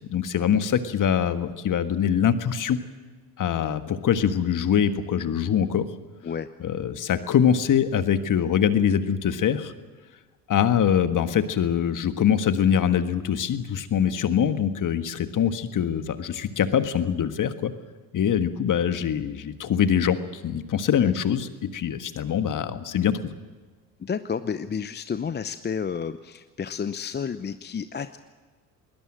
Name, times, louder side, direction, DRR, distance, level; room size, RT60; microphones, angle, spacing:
voice 1, 0.1-2.8 3.4-5.9 6.6-9.7 10.5-17.7 18.1-23.3, left 8 dB, 40° left, 10 dB, 1.7 m, -23 dB
voice 2, 24.0-28.2, left 6 dB, 20° left, 12 dB, 0.8 m, -31 dB
21.0 x 20.0 x 7.6 m, 1.3 s
hypercardioid pair, 60°, 49 cm